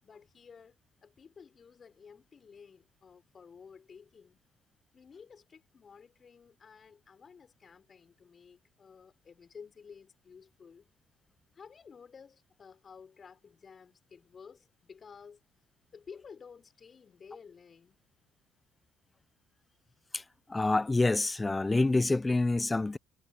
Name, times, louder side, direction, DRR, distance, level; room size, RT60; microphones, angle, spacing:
voice 1, 0.0-4.4 4.9-10.9 11.5-15.4 15.9-18.0, left 6 dB, 35° left, 5.7 m, -53 dB
voice 2, 20.5-23.0, left 2 dB, 15° left, 0.5 m, -27 dB
supercardioid pair, 80°, 0 cm